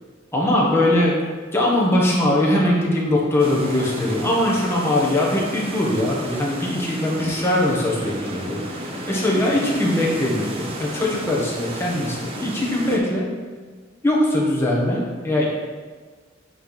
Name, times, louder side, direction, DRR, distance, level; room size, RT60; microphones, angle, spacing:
voice 1, 0.3-1.2 1.5-13.3 14.0-15.5, left 1 dB, 15° left, -5 dB, 1.2 m, -21 dB
sound 1, 3.4-13.0, right 1 dB, 30° right, 0.7 m, -33 dB
9.0 x 3.3 x 4.1 m, 1.4 s
head